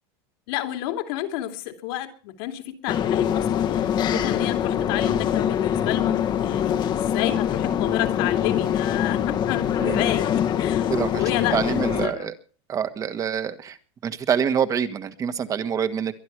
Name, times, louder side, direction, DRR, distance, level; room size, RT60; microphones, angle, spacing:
voice 1, 0.5-12.3, left 13 dB, 65° left, 6 dB, 3.0 m, -31 dB
sound 1, 2.9-12.1, left 9 dB, 30° left, 1.4 m, -24 dB
voice 2, 10.9-11.2 11.5-12.3 12.7-13.8 14.0-16.1, right 7 dB, 25° right, 11 dB, 1.6 m, -26 dB
23.0 x 11.0 x 4.8 m, 0.40 s
supercardioid pair, 145°, 13 cm